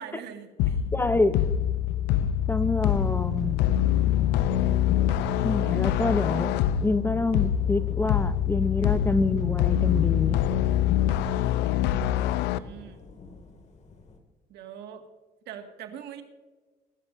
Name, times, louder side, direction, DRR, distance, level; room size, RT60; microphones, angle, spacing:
voice 1, 0.0-0.8 12.4-13.0 14.5-15.1 15.5-16.2, right 8 dB, 80° right, 5 dB, 2.0 m, -42 dB
sound 1, 0.6-12.6, left 11 dB, 90° left, 0.6 m, -25 dB
voice 2, 0.9-1.4 2.5-3.6 5.4-10.4, left 2 dB, 15° left, 12 dB, 0.7 m, -27 dB
Thunder / Rain, 3.7-14.2, left 3 dB, 40° left, 2.3 m, -45 dB
22.0 x 13.0 x 2.7 m, 1.3 s
cardioid pair, 110°, 17 cm